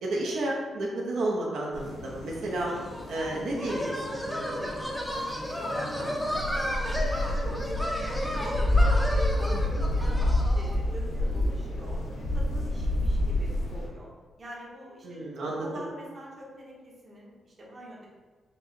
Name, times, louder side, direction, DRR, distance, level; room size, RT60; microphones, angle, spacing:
voice 1, 0.0-2.7 3.1-4.7 9.8-9.9 15.0-15.8, right 1 dB, 80° right, -3 dB, 0.7 m, -32 dB
sound 1, 1.7-13.9, left 1 dB, 85° left, 0.8 m, -29 dB
sound 2, 2.7-10.8, equal, ahead, 0.5 m, -33 dB
voice 2, 5.1-14.1 14.4-18.1, equal, 35° right, -3 dB, 0.8 m, -44 dB
4.5 x 2.9 x 2.7 m, 1.4 s
cardioid pair, 135°, 0 cm